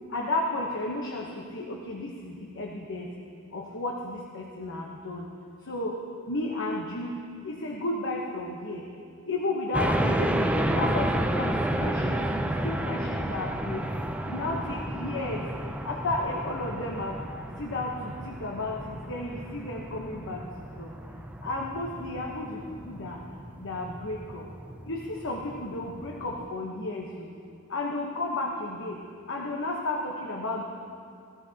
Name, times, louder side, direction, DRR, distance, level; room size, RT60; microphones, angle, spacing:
voice 1, 0.1-3.1 3.5-5.2 5.7-5.9 6.3-7.1 7.4-8.8 9.3-10.5 10.7-13.8 14.3-15.5 15.8-17.2 17.6-20.4 20.8-20.9 21.4-22.6 22.9-23.2 23.6-24.4 24.9-27.3 27.7-29.0 29.3-30.6, left 2 dB, 60° left, -1 dB, 1.0 m, -33 dB
sound 1, 9.7-26.4, right 1 dB, 5° right, 0.4 m, -31 dB
16.5 x 14.5 x 2.8 m, 2.4 s
head